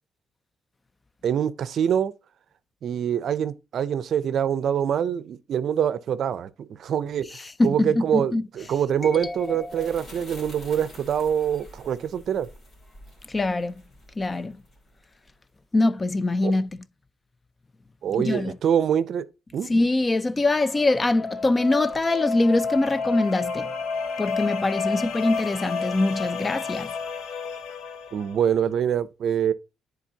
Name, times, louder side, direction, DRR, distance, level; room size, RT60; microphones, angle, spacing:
voice 1, 1.2-2.1 2.8-12.5 16.4-16.5 18.0-19.3 19.5-19.7 28.1-29.5, right 8 dB, 65° right, 0.5 m, -25 dB
voice 2, 7.6-8.4 9.1-9.4 9.8-9.9 13.3-13.7 14.2-14.6 15.7-16.7 18.2-18.5 19.7-23.7 24.2-26.9, left 2 dB, 25° left, 0.4 m, -23 dB
sound 1, 8.8-15.4, left 1 dB, 45° left, 2.7 m, -48 dB
sound 2, 20.7-28.5, left 4 dB, 75° left, 0.7 m, -31 dB
10.0 x 3.8 x 2.8 m
cardioid pair, 90°, 0 cm